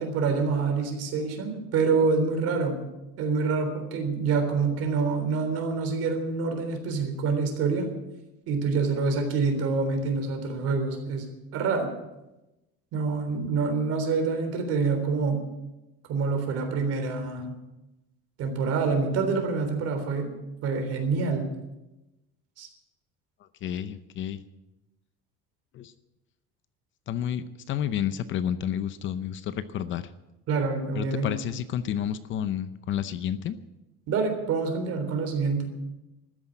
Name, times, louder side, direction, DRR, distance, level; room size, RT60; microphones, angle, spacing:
voice 1, 0.0-2.8 3.2-7.9 8.5-11.2 11.5-11.9 12.9-15.5 16.1-17.6 18.4-20.4 20.6-21.5 22.6-22.7 30.5-31.3 34.1-35.7, right 4 dB, 55° right, 5 dB, 3.7 m, -26 dB
voice 2, 23.6-24.4 25.7-25.9 27.1-30.1 30.9-33.6, left 10 dB, 45° left, 13 dB, 0.7 m, -30 dB
13.5 x 10.0 x 9.0 m, 0.97 s
cardioid pair, 165°, 29 cm